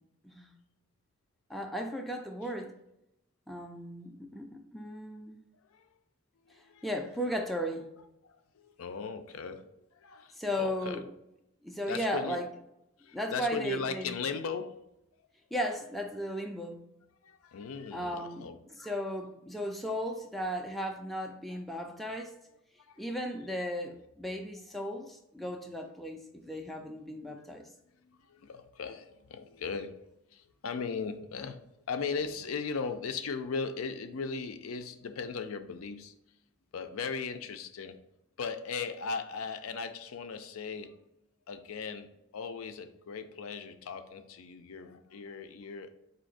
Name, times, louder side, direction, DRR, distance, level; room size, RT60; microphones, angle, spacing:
voice 1, 1.5-2.7 3.5-5.4 6.8-7.9 10.3-11.1 11.6-12.6 13.1-14.2 15.5-16.8 17.9-22.3 23.0-27.7 32.2-32.3, equal, ahead, 2 dB, 0.3 m, -36 dB
voice 2, 6.5-6.9 8.2-11.0 11.9-12.4 13.0-14.9 17.2-18.9 21.9-22.3 22.8-23.0 27.4-27.5 28.0-30.1 30.3-31.6 31.9-36.1 36.7-38.0 38.4-41.0 41.5-42.1 42.3-45.9, left 5 dB, 85° left, 8 dB, 0.5 m, -38 dB
4.3 x 2.8 x 4.0 m, 0.84 s
head